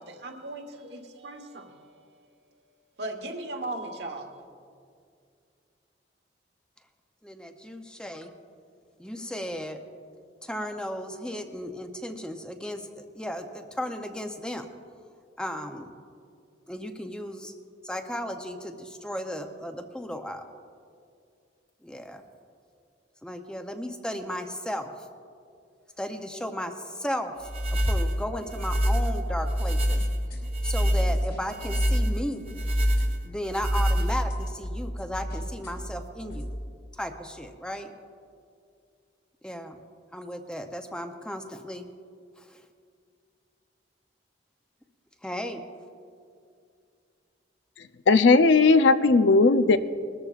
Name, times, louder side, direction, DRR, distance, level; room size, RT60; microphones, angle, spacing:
voice 1, 0.0-1.8 3.0-4.3, right 2 dB, 65° right, 4 dB, 1.3 m, -37 dB
voice 2, 7.2-8.3 9.0-9.8 10.4-14.7 15.4-15.9 16.7-17.5 17.8-20.5 21.8-22.2 23.2-25.1 26.0-30.0 30.3-32.4 33.2-36.5 36.9-37.9 39.4-39.8 40.1-41.9 42.4-42.7 45.2-45.6, equal, 5° left, 6 dB, 0.6 m, -35 dB
sound 1, 27.4-34.5, equal, 30° right, 0.7 m, -26 dB
sound 2, 29.2-36.5, equal, 50° left, 3.1 m, -36 dB
voice 3, 48.1-49.8, left 3 dB, 80° left, 11 dB, 0.5 m, -17 dB
20.5 x 13.5 x 2.4 m, 2.3 s
head